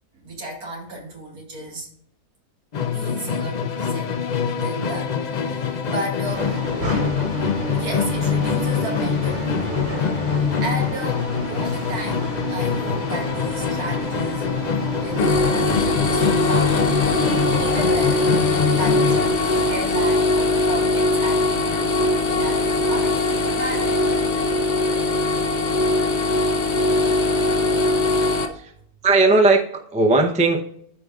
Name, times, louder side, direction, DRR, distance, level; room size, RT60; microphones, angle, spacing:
voice 1, 0.2-1.9 2.9-5.1 5.4-6.6 7.7-9.8 10.3-14.5 14.9-17.2 17.6-18.4 18.7-21.8 22.3-24.0, right 1 dB, 75° right, -1 dB, 2.6 m, -34 dB
Musical instrument, 2.7-19.4, left 6 dB, 60° left, 0.4 m, -24 dB
sound 1, 6.2-19.8, right 1 dB, 45° right, 3.3 m, -31 dB
sound 2, 15.2-28.5, left 2 dB, 75° left, 1.5 m, -21 dB
voice 2, 29.0-30.6, right 3 dB, 10° right, 4 dB, 0.5 m, -17 dB
13.5 x 4.8 x 2.5 m, 0.68 s
omnidirectional pair, 1.6 m